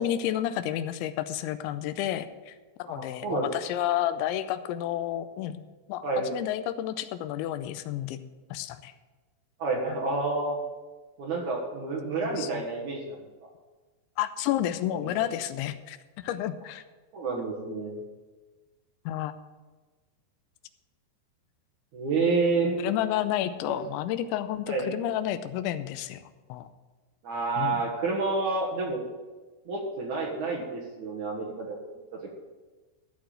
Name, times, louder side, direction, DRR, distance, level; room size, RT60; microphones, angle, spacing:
voice 1, 0.0-5.6 5.9-6.1 6.3-8.2 8.5-8.9 9.9-10.0 12.2-12.6 14.2-16.8 19.1-19.3 22.8-26.7 27.6-27.8, left 12 dB, 90° left, 11 dB, 2.9 m, -31 dB
voice 2, 2.9-3.5 6.0-6.2 9.6-10.6 11.2-13.0 14.9-15.3 17.1-18.0 21.9-22.8 23.7-23.8 24.7-24.9 27.2-29.1 29.7-31.8, right 3 dB, 60° right, -3 dB, 2.3 m, -29 dB
13.5 x 4.8 x 8.9 m, 1.3 s
omnidirectional pair, 5.2 m